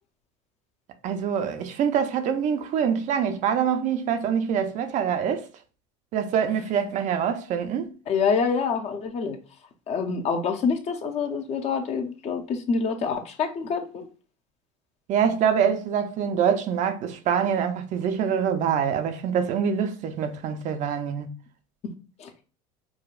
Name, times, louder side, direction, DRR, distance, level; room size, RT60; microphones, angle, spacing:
voice 1, 1.0-5.5 6.1-7.9 15.1-21.3, right 7 dB, 45° right, 0.5 m, -25 dB
voice 2, 8.1-9.4 9.9-14.1 21.8-21.9 22.2-22.3, left 5 dB, 40° left, 0.6 m, -26 dB
4.8 x 2.2 x 2.4 m
supercardioid pair, 105°, 17 cm